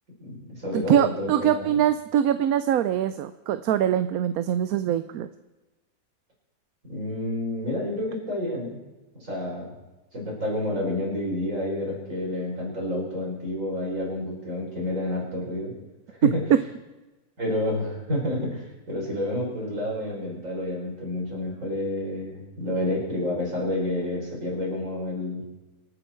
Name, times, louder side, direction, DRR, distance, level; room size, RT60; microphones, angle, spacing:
voice 1, 0.2-1.8 6.9-8.8 9.1-9.7 10.1-15.7 16.2-16.4 17.4-25.4, left 1 dB, 55° right, -3 dB, 5.6 m, -29 dB
voice 2, 0.7-5.3 16.5-16.6, right 10 dB, 75° right, 12 dB, 1.1 m, -23 dB
25.5 x 9.2 x 4.5 m, 1.1 s
omnidirectional pair, 1.6 m